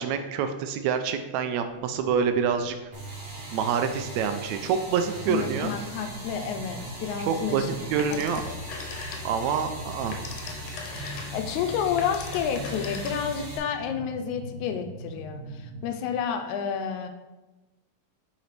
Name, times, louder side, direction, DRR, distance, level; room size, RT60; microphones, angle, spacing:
voice 1, 0.0-2.8 3.5-5.7 7.2-7.6 7.9-8.4 9.2-10.2, right 7 dB, 80° right, 8 dB, 1.7 m, -27 dB
sound 1, 1.7-15.9, right 2 dB, 65° right, 2.5 m, -43 dB
sound 2, 2.9-13.6, equal, 25° right, 1.3 m, -40 dB
voice 2, 5.3-7.7 8.1-8.2 8.5-8.6 11.3-17.1, left 7 dB, 85° left, 6 dB, 2.0 m, -30 dB
Telephone, 8.0-9.5 9.9-13.5, left 4 dB, 70° left, 1.7 m, -40 dB
9.4 x 3.9 x 3.2 m, 1.1 s
omnidirectional pair, 3.3 m